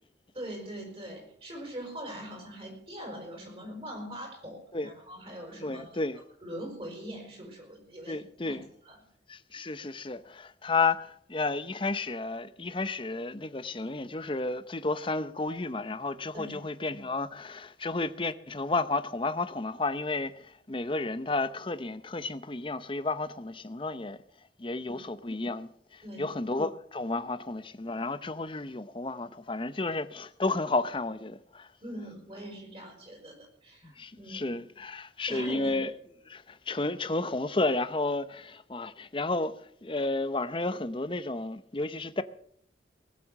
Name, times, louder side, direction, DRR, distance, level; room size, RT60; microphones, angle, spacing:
voice 1, 0.3-5.9 6.4-8.6 8.9-9.0 16.3-16.6 24.9-25.0 26.0-26.4 31.8-34.6 35.3-35.7, equal, 30° right, 5.4 m, -42 dB
voice 2, 5.6-6.2 8.1-8.7 9.3-24.2 24.6-31.7 33.8-35.9 36.3-42.2, left 3 dB, 25° left, 0.7 m, -32 dB
19.5 x 7.7 x 7.3 m
head